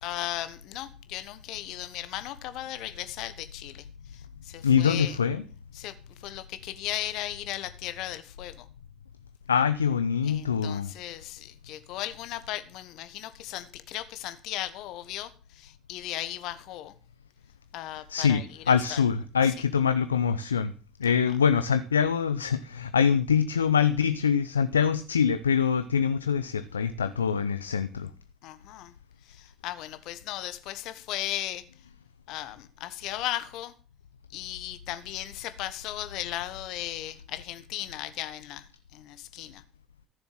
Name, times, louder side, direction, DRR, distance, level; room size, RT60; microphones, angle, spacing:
voice 1, 0.0-3.8 4.4-5.2 5.7-5.9 6.2-8.6 10.2-16.9 17.7-19.0 21.0-21.1 28.4-28.9 29.3-31.6 32.3-33.7 34.3-38.7 38.9-39.6, left 14 dB, 60° left, 1.2 m, -36 dB
voice 2, 4.6-5.4 9.5-10.9 18.1-20.7 21.0-28.1, left 7 dB, 90° left, 0.6 m, -24 dB
14.5 x 7.0 x 7.5 m
hypercardioid pair, 60°, 0 cm